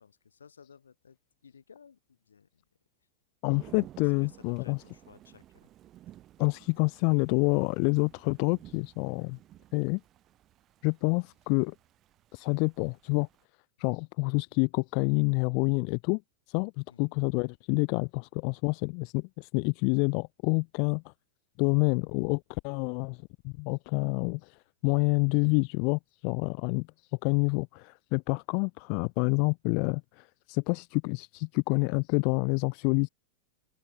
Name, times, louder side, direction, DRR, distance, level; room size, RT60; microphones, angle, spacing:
voice 1, 0.0-2.6 4.0-5.7 16.9-17.1 22.0-22.1, left 6 dB, 70° left, 4.0 m, -57 dB
voice 2, 3.4-4.8 6.4-9.4 9.7-10.0 10.8-11.7 12.3-13.3 13.8-16.2 16.5-21.0 21.6-23.2 23.4-24.6 24.8-26.9 27.2-33.1, left 40 dB or more, 45° left, 0.5 m, -28 dB
Thunder / Rain, 3.5-13.4, right 13 dB, 30° right, 4.1 m, -54 dB
open air
figure-of-eight pair, 90°, 0 cm